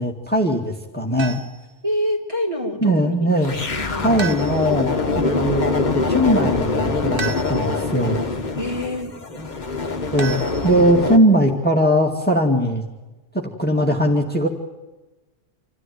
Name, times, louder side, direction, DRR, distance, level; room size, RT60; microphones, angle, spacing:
voice 1, 0.0-1.4 2.8-3.6 4.0-8.2 10.1-12.8 13.3-14.5, equal, 10° left, 1 dB, 2.2 m, -20 dB
sound 1, 1.2-1.7 4.2-4.9 7.2-7.9 10.2-11.1, right 5 dB, 45° right, 1.5 m, -32 dB
voice 2, 1.8-3.1 3.7-4.2 4.5-4.6 8.6-9.1, equal, 25° right, 0 dB, 3.8 m, -26 dB
sound 2, 3.4-11.2, left 3 dB, 40° left, 1.5 m, -24 dB
27.0 x 14.0 x 9.6 m, 1.1 s
omnidirectional pair, 1.3 m